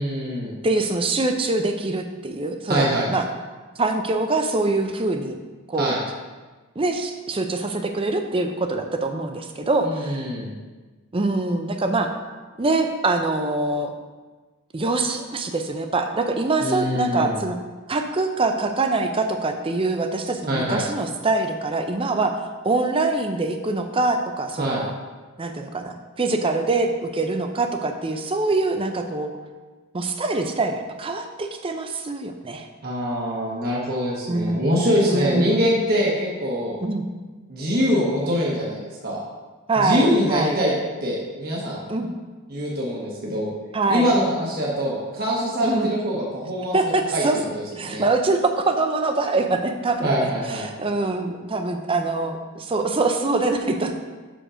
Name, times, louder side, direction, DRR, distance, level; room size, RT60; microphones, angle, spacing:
voice 1, 0.0-0.5 2.7-3.1 5.8-6.0 9.8-10.5 16.6-17.4 20.5-20.8 24.6-24.9 32.8-36.8 37.5-39.2 39.8-40.7 41.0-41.8 42.5-43.5 43.9-47.2 47.5-48.0 50.0-50.7, equal, 45° right, -4 dB, 1.0 m, -24 dB
voice 2, 0.6-3.3 3.8-5.4 5.7-6.0 6.8-10.2 11.1-12.1 12.6-13.9 14.7-17.6 17.9-22.4 22.6-24.9 25.4-29.4 29.9-32.7 34.3-34.7 35.1-35.6 36.8-37.0 39.7-40.6 41.9-42.1 43.7-44.1 45.6-45.9 46.7-47.4 47.8-54.0, right 2 dB, 25° right, 6 dB, 0.5 m, -24 dB
6.4 x 5.1 x 4.9 m, 1.3 s
head